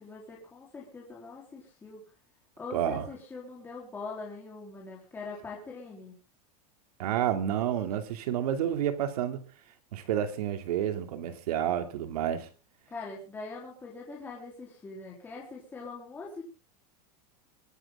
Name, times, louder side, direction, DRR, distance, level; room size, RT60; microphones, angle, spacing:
voice 1, 0.0-2.0 2.6-6.1 12.9-16.4, left 3 dB, 10° left, 3.8 m, -42 dB
voice 2, 2.7-3.0 7.0-9.4 9.9-12.5, right 10 dB, 80° right, 2.8 m, -30 dB
23.5 x 10.5 x 3.7 m
supercardioid pair, 175°, 19 cm